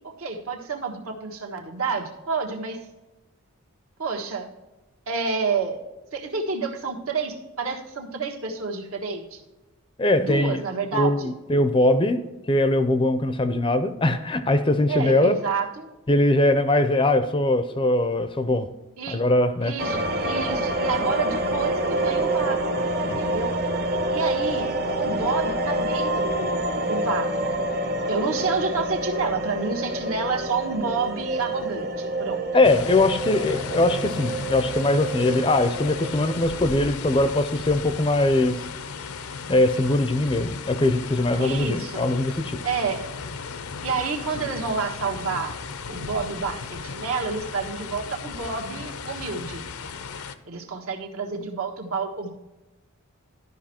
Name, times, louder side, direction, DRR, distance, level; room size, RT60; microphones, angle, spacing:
voice 1, 0.2-2.8 4.0-4.5 5.1-5.8 6.1-9.4 10.2-11.3 14.9-15.9 19.0-19.2 19.6-23.5 24.1-24.7 25.0-27.4 28.1-32.4 41.4-42.1 42.6-43.0 43.8-45.5 45.9-49.6 50.4-52.3, right 4 dB, 75° right, 1 dB, 1.5 m, -29 dB
voice 2, 10.0-10.6 10.9-12.2 12.5-15.4 16.1-18.7 19.1-19.7 23.1-23.2 32.5-38.6 39.5-42.6, left 2 dB, 20° left, 10 dB, 0.5 m, -21 dB
sound 1, 19.8-36.5, right 1 dB, 45° right, 0.9 m, -27 dB
sound 2, 32.6-50.4, left 5 dB, 75° left, 0.6 m, -35 dB
12.0 x 5.4 x 4.3 m, 1.1 s
head